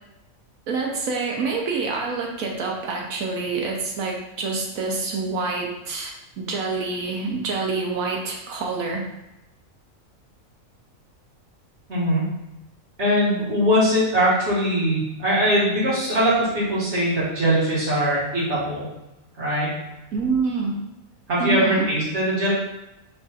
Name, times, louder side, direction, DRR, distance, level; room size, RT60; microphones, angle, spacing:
voice 1, 0.7-9.0 20.1-20.8 21.4-21.9, right 4 dB, 80° right, 0 dB, 1.2 m, -27 dB
voice 2, 11.9-12.2 13.0-18.9 19.4-19.7 21.3-22.5, equal, 55° right, -7 dB, 2.0 m, -21 dB
4.7 x 2.5 x 4.0 m, 0.94 s
omnidirectional pair, 1.4 m